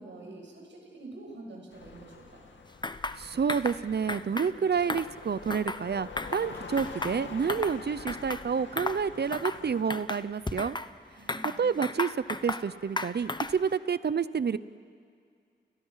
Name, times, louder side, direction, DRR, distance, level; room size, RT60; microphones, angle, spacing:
voice 1, 0.0-2.4 11.2-11.6, right 2 dB, 75° right, 0 dB, 6.9 m, -46 dB
sound 1, 1.7-9.8, left 4 dB, 75° left, 2.3 m, -46 dB
sound 2, 2.8-3.2 3.5-3.8 4.1-4.5 4.8-5.8 6.2-6.5 6.8-7.8 8.1-8.4 8.8-9.0 9.3-9.6 9.9-10.9 11.3-12.7 13.0-13.6, left 2 dB, 25° left, 1.1 m, -34 dB
voice 2, 3.2-10.8 11.6-14.6, right 6 dB, 60° right, 16 dB, 0.8 m, -29 dB
30.0 x 30.0 x 5.8 m, 2.2 s
cardioid pair, 50°, 19 cm